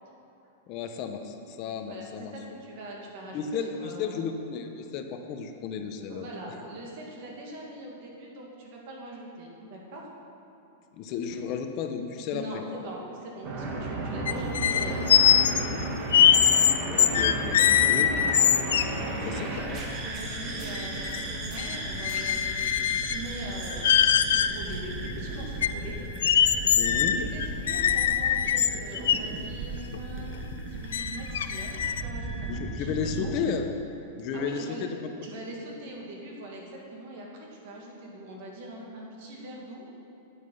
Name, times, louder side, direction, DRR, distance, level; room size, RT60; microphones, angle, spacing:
voice 1, 0.7-2.3 3.3-6.5 10.9-12.6 16.8-18.1 19.2-19.8 26.8-27.2 32.5-33.7 34.2-35.3, left 6 dB, 35° left, 5 dB, 0.8 m, -33 dB
voice 2, 1.9-3.5 3.7-4.3 6.1-10.1 12.3-15.9 18.1-18.3 18.8-26.0 27.2-30.3 30.6-33.4 34.3-34.8 35.2-39.9, right 1 dB, 50° right, -2 dB, 2.0 m, -42 dB
sound 1, 13.4-33.2, right 2 dB, 30° right, 1.3 m, -35 dB
sound 2, 14.3-19.0 19.6-19.7 20.0-21.3 21.6-23.3 23.7-24.5 25.1-25.2 25.6-29.2 29.9-30.0 30.4-30.6 30.9-32.0, left 9 dB, 90° left, 0.4 m, -23 dB
9.6 x 8.3 x 5.6 m, 2.8 s
supercardioid pair, 160°, 0 cm